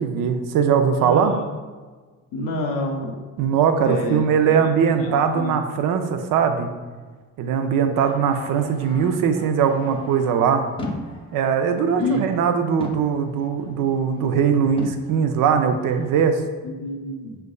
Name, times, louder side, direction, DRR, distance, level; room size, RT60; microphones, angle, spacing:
voice 1, 0.0-1.3 3.4-6.7 7.4-10.6 11.3-16.4, right 7 dB, 80° right, 6 dB, 0.5 m, -20 dB
voice 2, 1.0-1.4 2.3-3.1 3.8-4.7 5.0-5.6 12.0-12.3 16.6-17.4, left 2 dB, 85° left, 2 dB, 0.7 m, -28 dB
sound 1, 7.9-12.5 12.8-14.5 14.8-16.1, left 1 dB, 15° left, 0.5 m, -40 dB
5.2 x 3.4 x 2.2 m, 1.4 s
cardioid pair, 80°, 32 cm